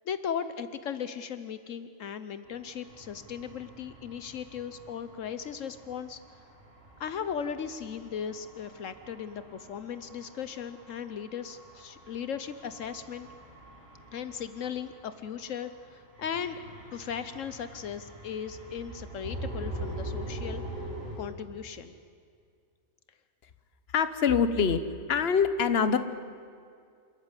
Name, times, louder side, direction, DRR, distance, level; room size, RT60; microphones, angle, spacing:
voice 1, 0.1-6.2 7.0-13.3 14.1-16.6 16.9-20.9 21.2-21.9, left 7 dB, 75° left, 12 dB, 1.2 m, -37 dB
sound 1, 2.4-21.2, right 1 dB, 45° right, 8.2 m, -44 dB
voice 2, 23.9-24.8 25.1-26.0, left 6 dB, 55° left, 11 dB, 1.3 m, -24 dB
27.0 x 14.0 x 9.8 m, 2.3 s
omnidirectional pair, 1.3 m